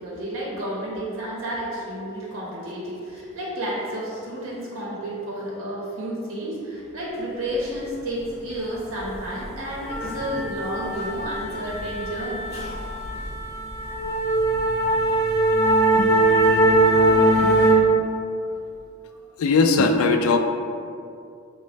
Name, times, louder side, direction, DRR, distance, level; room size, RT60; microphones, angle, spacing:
voice 1, 0.0-12.5 17.2-17.4, right 1 dB, 75° right, -5 dB, 0.8 m, -31 dB
sound 1, 9.0-9.2 9.4-17.7, right 1 dB, 50° left, 0.8 m, -21 dB
voice 2, 15.6-17.6 19.4-20.4, left 4 dB, 85° left, 6 dB, 0.3 m, -23 dB
5.0 x 2.1 x 3.2 m, 2.5 s
head